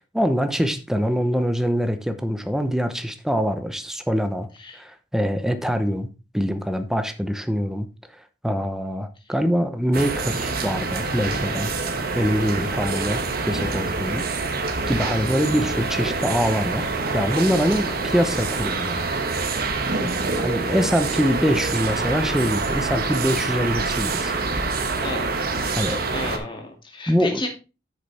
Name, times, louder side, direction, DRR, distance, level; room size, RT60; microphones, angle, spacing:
voice 1, 0.1-4.5 4.7-6.1 6.3-7.9 8.4-11.7 12.1-14.3 14.6-19.0 20.0-20.1 20.4-24.3 25.8-26.0 27.1-27.4, equal, 5° right, 0.8 m, -24 dB
sound 1, 9.9-26.4, right 3 dB, 55° right, 1.3 m, -26 dB
voice 2, 17.7-18.0 25.0-25.3 26.1-27.5, left 2 dB, 30° left, 2.3 m, -33 dB
9.6 x 6.7 x 3.4 m
head